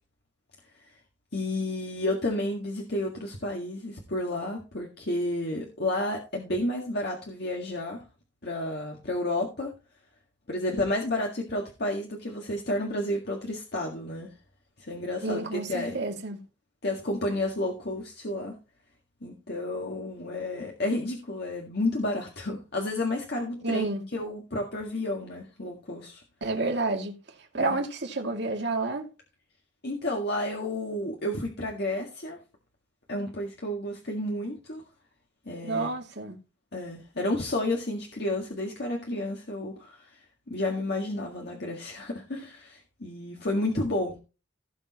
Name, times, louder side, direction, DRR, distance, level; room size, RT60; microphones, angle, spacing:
voice 1, 1.3-8.0 8.4-9.7 10.5-14.3 14.8-16.0 16.8-18.6 19.2-23.9 24.1-26.2 27.6-27.8 29.8-32.4 33.1-34.8 35.5-35.9 36.7-40.2 40.5-44.2, left 1 dB, 60° left, 1.8 m, -31 dB
voice 2, 15.2-16.4 23.6-24.0 26.4-27.2 27.5-29.1 35.6-36.4, right 2 dB, 65° right, 2.3 m, -29 dB
16.5 x 6.4 x 3.0 m
head